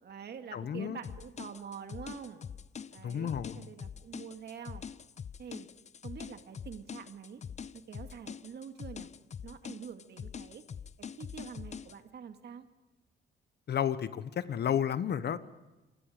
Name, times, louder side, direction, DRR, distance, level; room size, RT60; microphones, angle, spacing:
voice 1, 0.0-2.5 2.9-4.8 5.4-5.7 6.0-7.4 7.7-9.1 9.4-10.6 11.0-12.7, right 7 dB, 55° right, 7 dB, 2.2 m, -46 dB
voice 2, 0.5-1.0 3.0-3.6 13.7-15.4, left 9 dB, 55° left, 14 dB, 1.2 m, -32 dB
sound 1, 1.0-12.0, left 7 dB, 35° left, 0.6 m, -44 dB
27.5 x 21.0 x 5.1 m, 1.1 s
cardioid pair, 90°, 20 cm